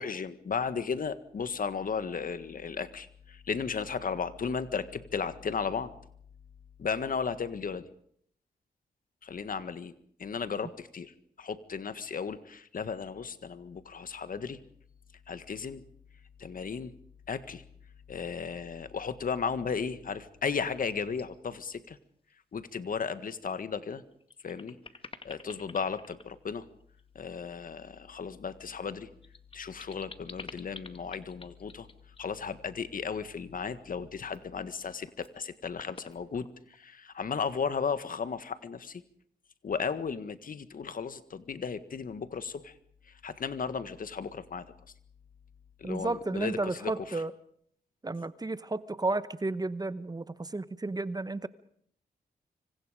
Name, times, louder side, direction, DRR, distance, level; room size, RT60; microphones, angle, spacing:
voice 1, 0.0-5.9 6.8-7.9 9.2-14.6 15.3-15.8 16.4-16.9 17.3-17.6 18.1-22.0 22.5-24.0 24.4-24.8 25.2-26.7 27.1-29.1 29.5-31.9 32.2-39.0 39.6-42.7 43.1-44.7 45.8-47.2, left 6 dB, 60° left, 12 dB, 1.7 m, -35 dB
sound 1, 20.9-21.2 21.6-22.0 22.3-22.4 23.6-23.7 24.1-27.2 28.8-32.3 34.2-34.7 35.1-35.4 35.8-36.8, left 3 dB, 35° left, 2.1 m, -49 dB
voice 2, 45.8-47.3 48.0-51.5, right 2 dB, 25° right, 14 dB, 1.1 m, -33 dB
25.5 x 25.5 x 5.1 m, 0.65 s
cardioid pair, 75°, 16 cm